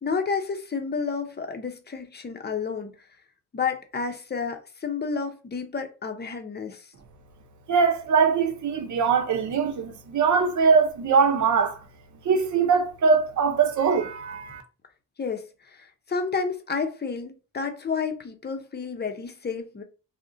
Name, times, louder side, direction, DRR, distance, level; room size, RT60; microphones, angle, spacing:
voice 1, 0.0-2.9 3.5-6.9 15.2-19.8, left 5 dB, 30° left, 0.7 m, -30 dB
voice 2, 7.7-11.8 12.2-14.6, right 5 dB, 65° right, 0.8 m, -22 dB
2.4 x 2.1 x 3.7 m
cardioid pair, 70°, 33 cm